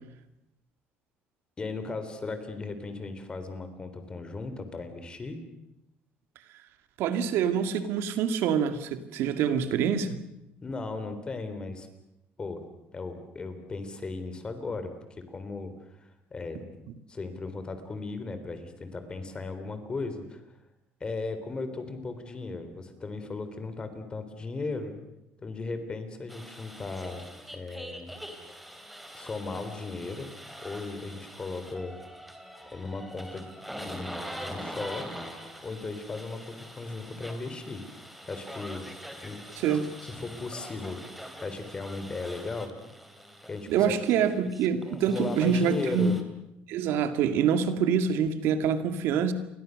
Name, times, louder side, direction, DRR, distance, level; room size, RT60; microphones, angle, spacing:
voice 1, 1.6-5.4 10.6-11.9 12.4-12.6 12.9-15.7 16.3-16.6 17.1-20.4 21.0-25.0 25.4-27.3 27.5-28.1 29.1-30.3 30.6-32.0 32.7-35.1 35.6-37.8 38.3-38.9 39.2-39.8 40.1-41.0 41.4-42.7 43.5-44.0 45.1-46.2, left 3 dB, 20° left, 9 dB, 3.6 m, -36 dB
voice 2, 7.0-10.2 39.6-39.9 43.7-46.2 46.7-49.3, right 7 dB, 75° right, 9 dB, 2.2 m, -26 dB
sound 1, 26.3-46.2, equal, ahead, 3.2 m, -44 dB
29.5 x 24.0 x 6.6 m, 0.88 s
cardioid pair, 140°, 4 cm